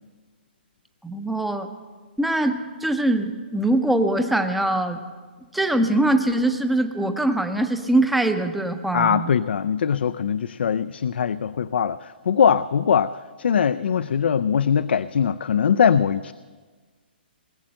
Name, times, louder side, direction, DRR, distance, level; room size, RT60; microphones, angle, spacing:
voice 1, 1.0-1.7 2.2-5.0 5.5-9.3, right 1 dB, ahead, 6 dB, 0.5 m, -22 dB
voice 2, 8.9-16.3, left 7 dB, 80° left, 14 dB, 0.4 m, -21 dB
19.5 x 7.6 x 7.6 m, 1.5 s
hypercardioid pair, 170°, 6 cm